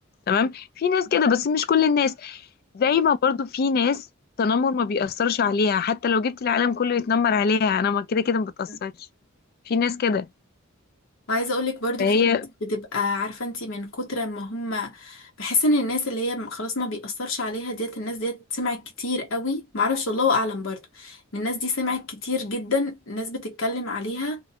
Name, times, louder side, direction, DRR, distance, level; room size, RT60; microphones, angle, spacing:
voice 1, 0.3-2.4 2.7-4.0 4.4-8.9 9.7-10.3 12.0-12.4, left 6 dB, 45° left, 0.3 m, -22 dB
voice 2, 11.3-12.3 12.6-24.4, left 2 dB, 70° left, 0.9 m, -27 dB
2.5 x 2.1 x 2.7 m
head